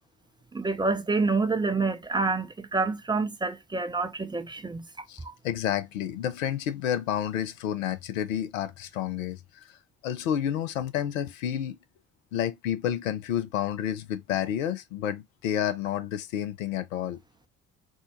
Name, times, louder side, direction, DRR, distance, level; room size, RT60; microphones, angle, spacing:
voice 1, 0.5-5.0, right 3 dB, 10° right, 0.5 m, -27 dB
voice 2, 5.1-9.8 10.0-11.8 12.3-17.2, left 10 dB, 75° left, 0.5 m, -30 dB
4.4 x 2.1 x 2.8 m
figure-of-eight pair, 45°, 41 cm